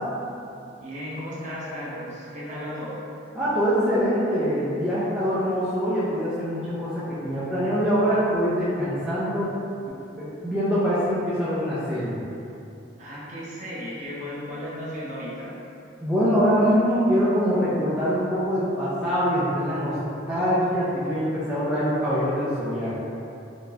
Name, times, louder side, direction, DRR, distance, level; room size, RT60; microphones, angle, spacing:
voice 1, 0.8-3.0 13.0-15.5, equal, 40° right, -8 dB, 0.7 m, -35 dB
voice 2, 3.3-9.5 10.2-12.2 16.0-20.0 20.3-23.1, equal, 5° right, -12 dB, 0.4 m, -24 dB
3.8 x 2.6 x 2.2 m, 2.7 s
head